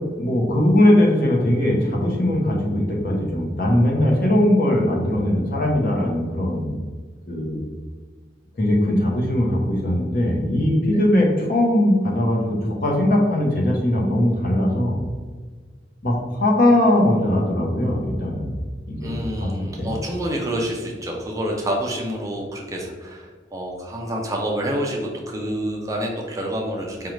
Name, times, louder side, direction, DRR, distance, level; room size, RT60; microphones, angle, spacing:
voice 1, 0.2-6.7 7.3-7.6 8.6-15.0 16.0-18.5 18.9-19.2 19.4-19.9, left 1 dB, 50° left, -2 dB, 0.8 m, -20 dB
voice 2, 19.0-27.1, equal, 20° right, -1 dB, 0.4 m, -28 dB
5.1 x 2.3 x 3.0 m, 1.5 s
head